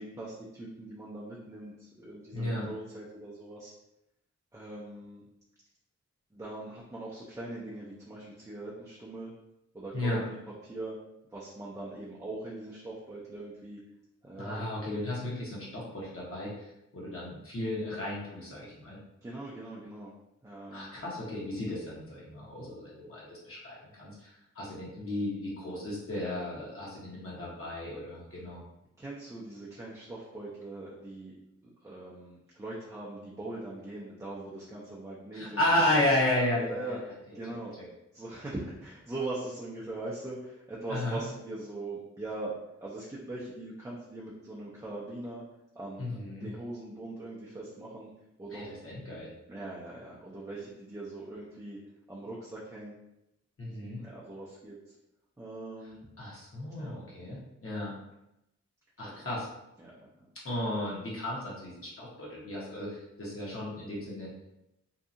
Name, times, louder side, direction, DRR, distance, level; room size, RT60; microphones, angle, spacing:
voice 1, 0.0-3.7 4.5-5.2 6.3-9.3 9.7-10.4 10.6-11.0 11.3-13.8 14.2-14.6 19.2-20.1 20.4-20.9 29.0-31.3 31.8-35.6 36.6-37.0 37.3-37.8 38.1-42.5 42.8-45.4 45.7-48.1 48.4-48.7 49.5-51.8 52.1-52.9 53.8-54.8 55.4-56.0 56.8-57.0 59.0-59.1 59.8-60.1, right 2 dB, 10° right, -6 dB, 0.4 m, -41 dB
voice 2, 2.3-2.7 9.9-10.2 14.4-16.7 16.9-19.0 20.7-28.6 35.3-36.8 40.9-41.2 46.0-46.5 48.5-49.3 53.6-54.0 56.2-57.9 59.0-59.5 60.4-64.3, left 1 dB, 50° left, -6 dB, 0.9 m, -33 dB
2.7 x 2.3 x 2.5 m, 0.86 s
wide cardioid pair, 105°, 29 cm